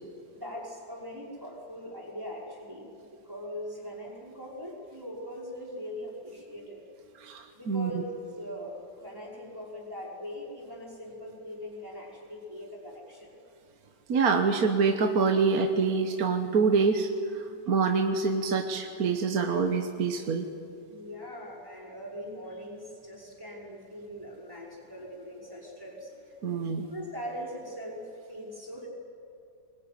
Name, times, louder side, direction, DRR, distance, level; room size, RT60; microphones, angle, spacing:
voice 1, 0.3-6.8 7.5-13.4 17.4-17.8 20.9-26.4 26.8-28.9, equal, 10° right, -3 dB, 5.4 m, -41 dB
voice 2, 7.2-7.9 14.1-20.5 26.4-26.9, right 4 dB, 55° right, 5 dB, 1.5 m, -26 dB
24.5 x 20.5 x 9.4 m, 2.5 s
omnidirectional pair, 2.0 m